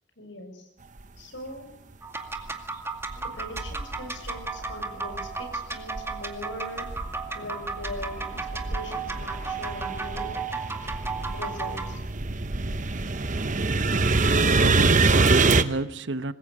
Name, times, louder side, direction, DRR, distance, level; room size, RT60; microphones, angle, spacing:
voice 1, 0.2-0.7 1.2-1.7 3.2-6.9 7.3-10.3 11.3-12.0, left 1 dB, 85° left, 6.9 m, -40 dB
sound 1, 2.0-12.0, right 4 dB, 15° right, 2.2 m, -34 dB
sound 2, 2.4-2.5 3.1-4.7 5.1-6.4 6.8-15.6, right 3 dB, 45° right, 1.0 m, -25 dB
voice 2, 14.4-16.3, right 2 dB, 75° right, 1.1 m, -30 dB
25.5 x 21.0 x 6.8 m
head